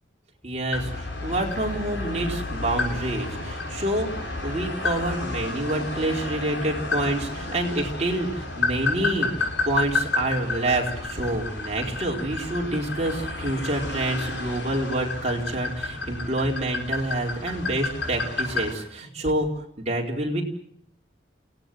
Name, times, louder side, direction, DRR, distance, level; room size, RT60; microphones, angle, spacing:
voice 1, 0.4-19.5 19.8-20.4, right 1 dB, 35° right, 0 dB, 4.4 m, -27 dB
sound 1, 0.7-18.7, left 3 dB, 75° left, 7.4 m, -31 dB
28.5 x 18.0 x 7.7 m, 0.68 s
head